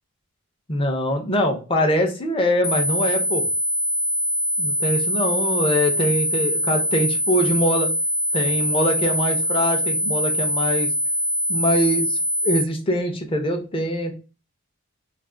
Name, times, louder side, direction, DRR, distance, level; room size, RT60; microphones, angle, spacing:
voice 1, 0.7-3.5 4.6-7.9 8.3-10.9 11.5-14.1, equal, 25° left, 4 dB, 0.5 m, -23 dB
sound 1, 2.6-12.6, equal, 85° left, 0.4 m, -23 dB
2.4 x 2.3 x 3.6 m, 0.34 s
head